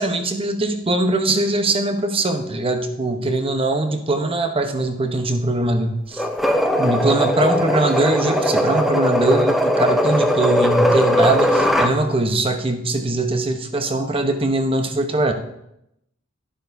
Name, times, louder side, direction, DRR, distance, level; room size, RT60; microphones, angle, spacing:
voice 1, 0.0-6.2 6.8-15.3, right 2 dB, 25° right, 6 dB, 0.9 m, -21 dB
sound 1, 6.2-11.9, equal, ahead, 0.6 m, -19 dB
12.0 x 11.5 x 2.7 m, 0.81 s
head